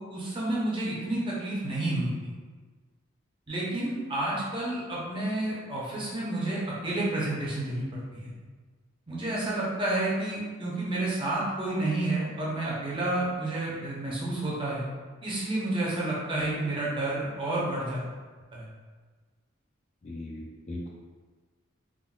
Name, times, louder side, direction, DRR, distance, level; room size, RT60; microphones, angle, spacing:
voice 1, 0.0-2.3 3.5-8.3 9.1-14.9 15.2-18.1 18.5-18.7, right 2 dB, 25° right, -6 dB, 0.6 m, -30 dB
voice 2, 20.0-20.9, left 1 dB, 35° left, -2 dB, 0.3 m, -38 dB
3.6 x 2.2 x 2.3 m, 1.4 s
head